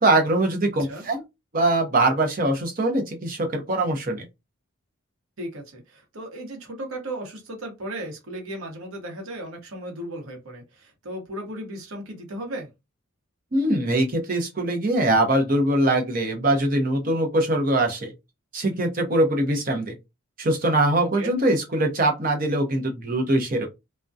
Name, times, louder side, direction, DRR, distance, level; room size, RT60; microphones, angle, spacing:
voice 1, 0.0-1.2 1.5-4.2 13.5-18.1 18.5-19.9 20.4-23.7, right 1 dB, 40° right, 0.7 m, -22 dB
voice 2, 5.4-12.7 21.0-21.3, right 1 dB, 80° right, 0.9 m, -36 dB
2.3 x 2.1 x 2.5 m
head